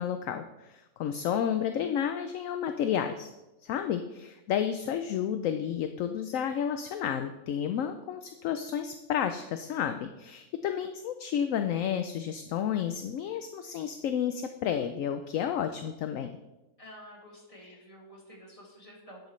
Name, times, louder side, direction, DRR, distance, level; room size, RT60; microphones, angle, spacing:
voice 1, 0.0-3.3 3.6-16.3, left 9 dB, 70° left, 8 dB, 0.9 m, -31 dB
voice 2, 16.8-19.3, equal, 25° left, -3 dB, 2.4 m, -50 dB
10.5 x 8.1 x 3.2 m, 1.0 s
omnidirectional pair, 1.5 m